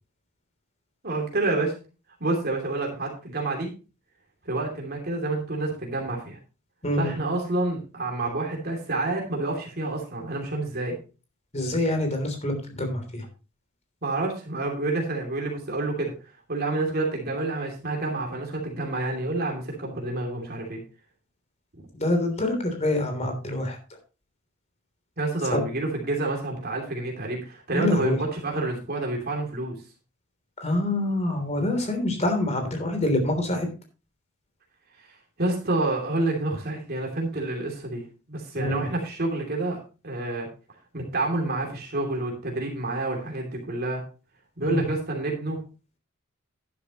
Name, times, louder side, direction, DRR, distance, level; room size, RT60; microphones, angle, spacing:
voice 1, 1.0-1.7 2.2-3.7 4.4-6.4 7.0-11.0 14.0-16.1 16.5-20.8 21.7-21.9 25.2-29.8 35.0-35.1 35.4-38.0 38.3-40.5 40.9-44.0 44.6-45.6, right 2 dB, 50° right, 0 dB, 2.9 m, -28 dB
voice 2, 11.5-13.3 22.0-23.8 25.5-25.6 27.7-28.2 30.6-33.7 38.5-38.9 44.6-44.9, left 1 dB, 35° left, 5 dB, 3.3 m, -26 dB
11.0 x 11.0 x 3.0 m, 0.33 s
head